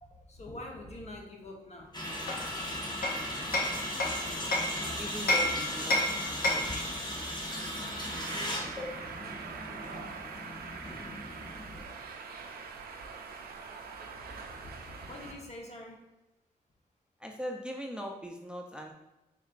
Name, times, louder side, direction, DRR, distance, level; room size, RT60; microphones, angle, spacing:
voice 1, 0.0-1.9 14.3-16.0, left 1 dB, 45° left, 0 dB, 0.9 m, -45 dB
sound 1, 1.9-11.8, equal, 30° left, 1.1 m, -37 dB
Hammer, 2.3-4.8 5.3-6.8, left 1 dB, 80° left, 0.7 m, -30 dB
voice 2, 5.0-6.0 6.3-6.9 17.2-18.9, equal, 5° right, 1 dB, 0.5 m, -40 dB
sound 2, 7.5-15.3, right 5 dB, 80° right, 0.5 m, -44 dB
4.2 x 3.7 x 2.5 m, 1.0 s
cardioid pair, 50°, 15 cm